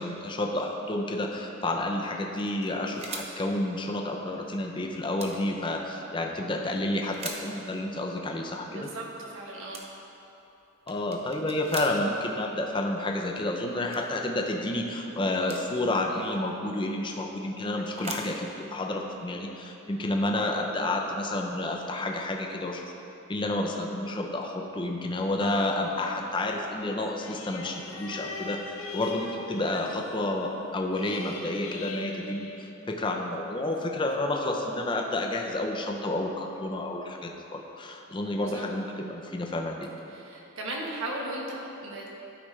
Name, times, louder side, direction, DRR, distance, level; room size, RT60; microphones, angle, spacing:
voice 1, 0.0-8.9 10.9-22.8 23.3-39.9, left 1 dB, 25° left, 2 dB, 0.5 m, -30 dB
sound 1, 2.3-3.8 4.0-4.1 4.4-4.6 5.0-5.5 6.2-6.5 6.9-7.8 8.4-8.7 9.4-9.5 9.7-10.2 10.6-12.3 12.7-12.8 13.0-14.1 14.7-15.8 16.4-17.3 17.6-19.5, right 4 dB, 30° right, 0.6 m, -42 dB
voice 2, 8.7-9.8 38.4-38.6 40.1-42.1, right 1 dB, 75° right, -3 dB, 1.3 m, -36 dB
sound 2, 25.4-33.2 33.8-33.9, left 3 dB, 90° left, 0.6 m, -41 dB
12.0 x 5.0 x 3.2 m, 2.9 s
head